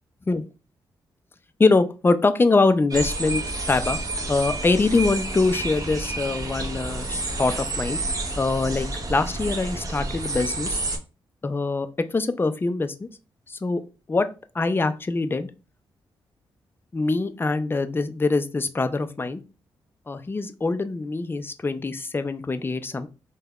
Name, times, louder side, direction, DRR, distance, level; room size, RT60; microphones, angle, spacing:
voice 1, 1.6-4.0 4.3-8.0 8.4-10.8 11.4-13.1 13.5-13.8 14.1-15.5 16.9-19.4 20.1-23.1, left 3 dB, 20° left, 10 dB, 0.4 m, -24 dB
sound 1, 2.9-11.0, right 2 dB, 35° right, 0.7 m, -30 dB
3.3 x 2.1 x 2.3 m, 0.32 s
cardioid pair, 55°, 10 cm